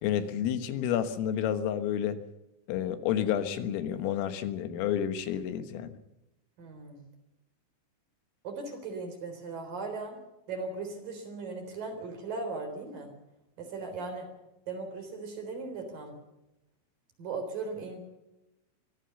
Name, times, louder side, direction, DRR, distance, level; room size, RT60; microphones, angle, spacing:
voice 1, 0.0-2.2 2.7-6.0, left 10 dB, 85° left, 10 dB, 4.1 m, -30 dB
voice 2, 6.6-7.1 8.4-10.2 10.5-13.1 13.6-14.3 14.7-16.2 17.2-18.0, right 3 dB, 45° right, 5 dB, 5.1 m, -38 dB
23.5 x 16.0 x 6.9 m, 0.93 s
omnidirectional pair, 5.8 m